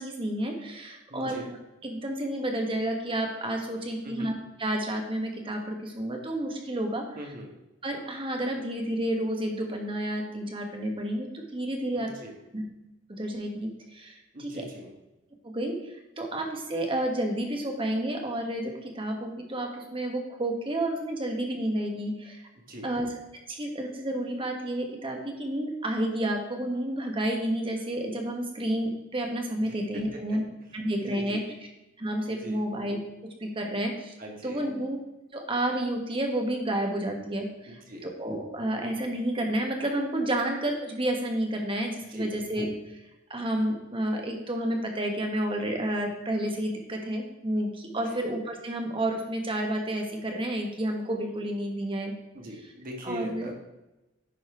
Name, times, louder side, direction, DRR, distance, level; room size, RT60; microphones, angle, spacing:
voice 1, 0.0-1.6 1.8-4.3 4.6-7.0 7.8-12.1 12.5-12.6 13.1-14.6 15.4-22.4 22.8-23.1 23.5-30.4 30.7-31.4 32.0-33.0 33.4-34.1 34.4-35.0 35.3-43.0 43.3-52.1 53.0-53.5, right 1 dB, 25° right, 2 dB, 1.3 m, -30 dB
voice 2, 1.1-1.5 4.0-4.3 7.2-7.5 11.9-12.3 14.3-14.9 22.7-22.9 29.6-29.8 31.0-31.6 32.3-32.6 34.2-34.7 37.7-38.1 42.1-42.3 48.1-48.2 52.3-53.6, equal, 45° right, 1 dB, 1.6 m, -41 dB
10.5 x 4.2 x 4.8 m, 0.99 s
head